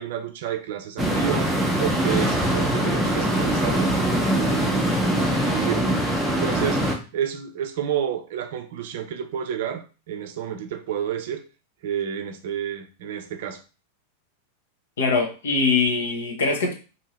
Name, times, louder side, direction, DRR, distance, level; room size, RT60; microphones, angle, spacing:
voice 1, 0.0-1.5 1.8-3.9 4.3-6.0 6.4-6.8 7.1-11.4 11.8-13.6, right 9 dB, 55° right, 8 dB, 0.4 m, -30 dB
sound 1, 1.0-6.9, right 1 dB, ahead, 0.7 m, -23 dB
voice 2, 15.0-16.7, left 4 dB, 60° left, 2 dB, 0.8 m, -22 dB
2.7 x 2.7 x 3.0 m, 0.33 s
figure-of-eight pair, 90°, 0 cm